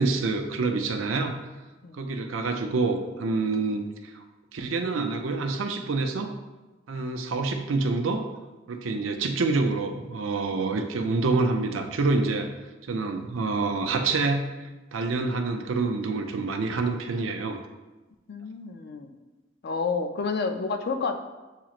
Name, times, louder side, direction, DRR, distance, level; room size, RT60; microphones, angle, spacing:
voice 1, 0.0-1.4 1.9-3.8 4.1-4.2 4.5-6.3 6.9-8.3 8.7-12.5 12.9-14.5 14.9-17.6, right 3 dB, 85° right, 5 dB, 0.5 m, -27 dB
voice 2, 18.3-19.2 19.6-21.2, left 4 dB, 55° left, 6 dB, 0.4 m, -30 dB
7.2 x 2.9 x 2.4 m, 1.1 s
head